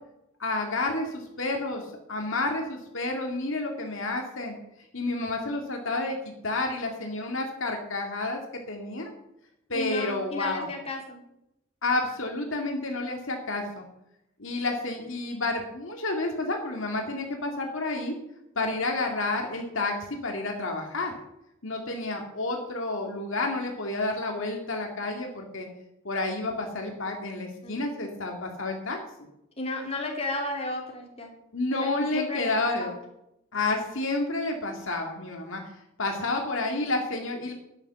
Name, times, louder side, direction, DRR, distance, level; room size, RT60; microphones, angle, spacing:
voice 1, 0.4-1.8 2.1-4.6 4.9-6.2 6.4-9.1 9.7-10.7 11.8-13.9 14.4-18.1 18.6-19.9 20.2-21.1 21.6-25.7 26.0-29.0 31.5-32.9 33.5-35.6 36.0-37.5, left 2 dB, 65° left, 2 dB, 2.2 m, -30 dB
voice 2, 9.7-11.2 27.6-27.9 29.6-31.3 31.7-32.5 32.8-32.9, left 2 dB, 30° left, 0 dB, 2.9 m, -34 dB
12.0 x 9.0 x 7.0 m, 0.83 s
head